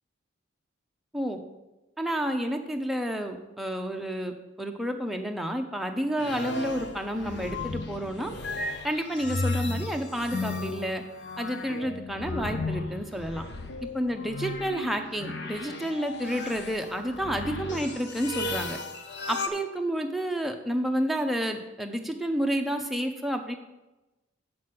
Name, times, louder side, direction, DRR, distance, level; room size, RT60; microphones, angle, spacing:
voice 1, 2.0-4.3 4.6-8.3 8.8-11.0 11.4-13.4 13.9-18.8 19.3-23.5, equal, ahead, 3 dB, 0.7 m, -30 dB
sound 1, 6.2-19.5, left 2 dB, 55° left, 0.9 m, -35 dB
7.5 x 6.0 x 7.7 m, 1.1 s
head